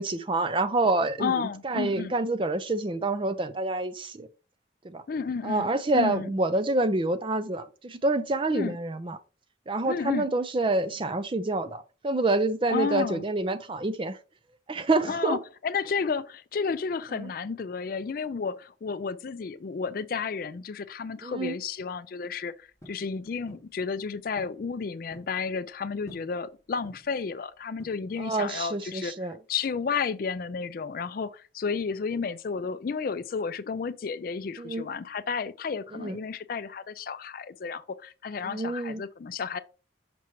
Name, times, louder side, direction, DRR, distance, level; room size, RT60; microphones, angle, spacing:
voice 1, 0.0-4.3 4.8-5.0 5.4-9.2 9.7-14.2 14.7-15.4 17.1-17.3 21.2-21.6 28.2-29.3 34.6-34.8 35.9-36.2 38.4-39.0, right 2 dB, 25° right, 0.4 m, -27 dB
voice 2, 1.2-2.1 5.1-6.3 8.5-8.8 9.8-10.3 12.7-13.2 15.1-39.6, left 5 dB, 50° left, 0.4 m, -32 dB
sound 1, 22.8-23.1 23.5-23.7 24.4-24.6 24.9-25.4 26.1-26.4 26.8-27.2 27.8-28.3, equal, 15° left, 1.5 m, -50 dB
6.0 x 5.7 x 3.1 m
head